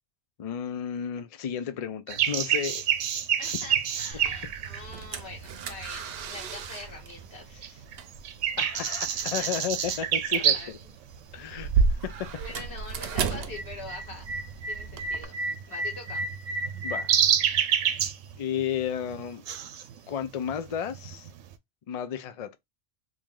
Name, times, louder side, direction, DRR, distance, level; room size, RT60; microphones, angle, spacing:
voice 1, 0.4-2.8 8.6-10.8 11.3-12.3 16.8-17.1 17.8-18.0 18.4-19.4 20.1-21.3 21.9-22.6, left 8 dB, 75° left, 0.3 m, -33 dB
sound 1, 2.1-6.1 6.5-7.4 7.6-10.8 11.1-11.2 11.9-12.3 12.6-21.5, right 8 dB, 90° right, 0.9 m, -28 dB
voice 2, 3.4-7.8 9.4-10.8 11.5-11.6 12.4-14.3 14.7-15.4 15.7-16.2, left 3 dB, 55° left, 1.7 m, -44 dB
sound 2, 4.1-15.2, right 5 dB, 65° right, 0.7 m, -34 dB
3.0 x 2.6 x 3.6 m
omnidirectional pair, 1.3 m